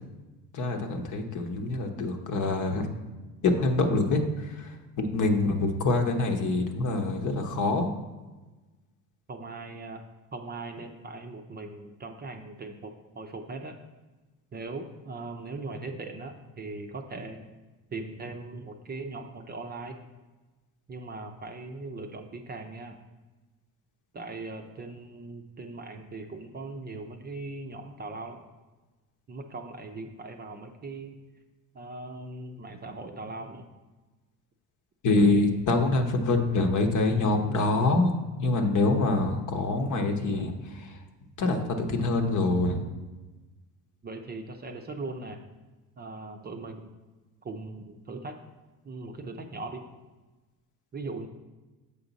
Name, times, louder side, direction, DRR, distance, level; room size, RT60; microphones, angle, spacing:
voice 1, 0.5-2.9 3.4-7.9 35.0-41.0 41.4-42.8, left 2 dB, 50° left, 5 dB, 1.0 m, -25 dB
voice 2, 9.3-10.0 10.3-13.8 14.5-17.4 17.9-20.0 20.9-23.0 24.1-28.4 29.3-31.1 31.7-33.7 44.0-45.4 46.0-46.9 47.4-48.4 48.8-49.8 50.9-51.3, right 3 dB, 25° right, 4 dB, 0.6 m, -39 dB
7.1 x 5.1 x 4.0 m, 1.2 s
supercardioid pair, 95°, 39 cm